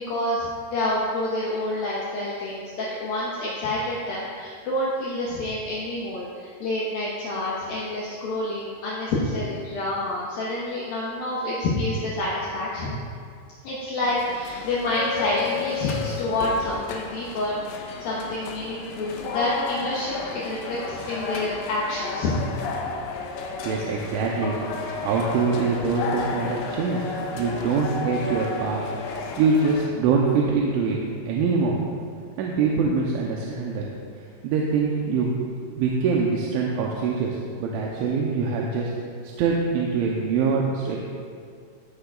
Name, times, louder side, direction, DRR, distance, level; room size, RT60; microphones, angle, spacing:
voice 1, 0.0-13.0 13.6-22.4, left 1 dB, 65° left, -6 dB, 2.5 m, -28 dB
sound 1, 14.0-29.9, left 5 dB, 90° left, 3.3 m, -33 dB
voice 2, 23.6-24.6 25.0-28.9 29.4-31.0 31.3-31.8 32.4-33.9 34.4-35.5 35.8-38.9 39.4-41.0, right 4 dB, 85° right, -3 dB, 3.2 m, -24 dB
17.0 x 9.1 x 2.4 m, 2.2 s
omnidirectional pair, 5.3 m